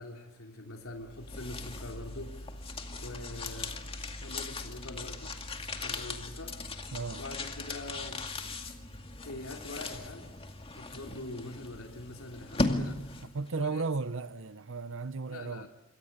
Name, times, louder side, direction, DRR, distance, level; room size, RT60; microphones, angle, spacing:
voice 1, 0.0-2.4 2.9-3.8 4.1-6.5 7.1-8.2 9.2-10.3 10.7-13.8 15.3-15.7, left 2 dB, 80° left, 3.2 m, -44 dB
sound 1, 0.9-13.5, left 2 dB, 25° left, 2.2 m, -38 dB
voice 2, 6.9-7.2 13.3-15.7, right 4 dB, 70° right, 0.9 m, -34 dB
27.0 x 23.5 x 8.1 m
head